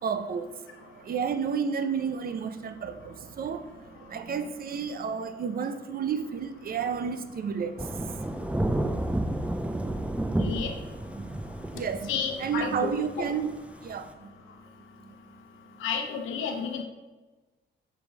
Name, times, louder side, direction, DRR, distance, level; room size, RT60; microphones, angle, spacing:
voice 1, 0.0-10.7 11.1-12.1 12.4-14.6 15.0-15.2 15.7-15.8, right 6 dB, 50° right, 0.6 m, -33 dB
Thunder / Rain, 7.8-14.1, right 1 dB, 5° right, 0.5 m, -31 dB
voice 2, 10.4-10.7 12.1-12.9 15.8-16.8, left 6 dB, 90° left, 0.9 m, -31 dB
7.1 x 3.4 x 4.7 m
cardioid pair, 90°, 20 cm